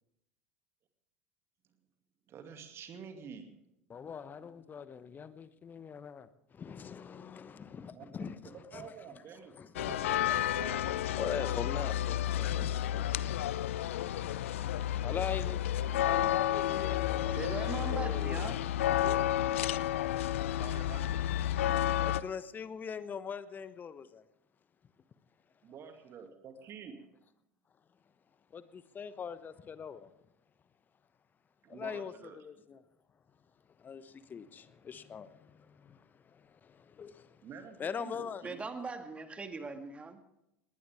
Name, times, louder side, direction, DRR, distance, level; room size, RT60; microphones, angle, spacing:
voice 1, 2.3-3.6 7.9-8.1 8.4-10.9 15.8-16.5 19.0-19.6 20.6-21.3 25.6-27.1 31.6-32.4 37.4-38.6, right 6 dB, 35° right, 2.4 m, -48 dB
voice 2, 3.9-9.2 9.5-9.8 10.3-10.5 10.8-14.4 14.9-15.6 16.0-17.4 17.7-18.6 22.0-24.2 28.5-30.1 31.7-32.8 33.8-37.5 37.8-38.5, left 7 dB, 25° left, 1.0 m, -43 dB
sound 1, 9.8-22.2, left 12 dB, 60° left, 0.6 m, -31 dB
voice 3, 17.3-18.6 38.4-40.2, right 4 dB, 15° right, 2.0 m, -40 dB
20.0 x 19.5 x 3.6 m
figure-of-eight pair, 75°, 8 cm